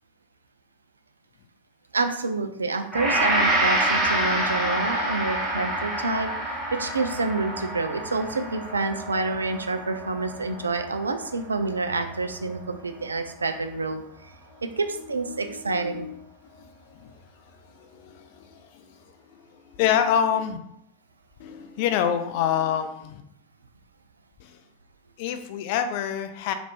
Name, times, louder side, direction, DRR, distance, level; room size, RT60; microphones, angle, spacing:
voice 1, 1.9-14.3 14.8-16.1, right 3 dB, 75° right, 7 dB, 0.3 m, -28 dB
Gong, 2.9-12.1, right 1 dB, 5° right, 1.1 m, -27 dB
voice 2, 15.1-16.1 16.6-17.1 17.6-19.0 19.7-20.6 21.4-23.2 24.4-24.6 25.2-26.5, left 9 dB, 45° left, 8 dB, 0.3 m, -27 dB
2.9 x 2.5 x 3.1 m, 0.75 s
figure-of-eight pair, 90°, 0 cm